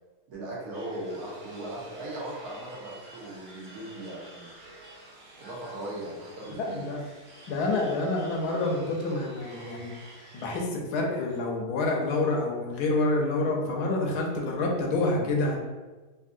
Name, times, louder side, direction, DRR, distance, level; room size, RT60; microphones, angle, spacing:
voice 1, 0.3-4.5 5.4-7.0, right 1 dB, 70° right, -4 dB, 1.3 m, -38 dB
sound 1, 0.7-10.6, right 1 dB, 50° right, 0.6 m, -49 dB
voice 2, 6.6-7.0 7.5-9.9 10.3-15.6, left 2 dB, 80° left, 0 dB, 1.1 m, -27 dB
3.5 x 2.6 x 2.5 m, 1.3 s
omnidirectional pair, 1.7 m